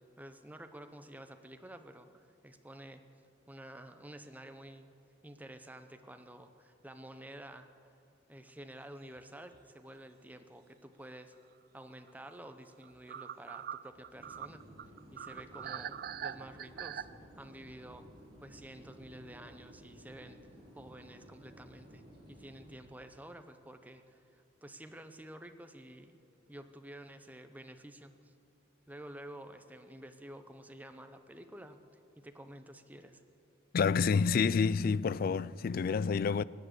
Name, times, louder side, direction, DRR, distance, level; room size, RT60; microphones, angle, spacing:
voice 1, 0.2-3.0 3.5-4.9 5.2-7.7 8.3-11.3 11.7-14.7 15.1-18.1 18.4-20.4 20.7-22.0 22.3-26.2 26.5-28.3 28.9-31.8 32.2-33.2, right 1 dB, 10° right, 0.7 m, -50 dB
sound 1, 8.9-9.2 9.5-9.6 12.1-12.2 12.4-12.5 12.8-17.1, right 9 dB, 50° right, 0.3 m, -42 dB
sound 2, 14.1-22.7, equal, 25° right, 3.6 m, -55 dB
voice 2, 33.7-36.4, left 5 dB, 50° left, 0.3 m, -28 dB
17.5 x 10.0 x 8.0 m
head